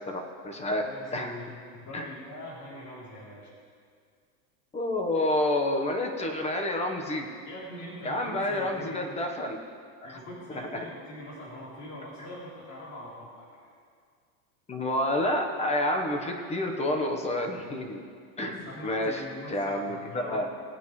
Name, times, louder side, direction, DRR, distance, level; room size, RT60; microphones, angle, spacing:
voice 1, 0.1-0.8 1.1-1.3 1.9-2.1 4.7-7.3 8.0-9.6 10.0-10.2 10.7-10.9 12.2-12.3 14.7-18.0 18.4-19.2 19.5-20.5, left 1 dB, 15° left, 3 dB, 1.2 m, -29 dB
voice 2, 0.8-1.4 1.7-3.5 7.4-9.0 10.0-13.5 18.4-20.5, left 1 dB, 50° left, -7 dB, 3.6 m, -42 dB
20.0 x 9.2 x 3.3 m, 2.1 s
supercardioid pair, 150°, 43 cm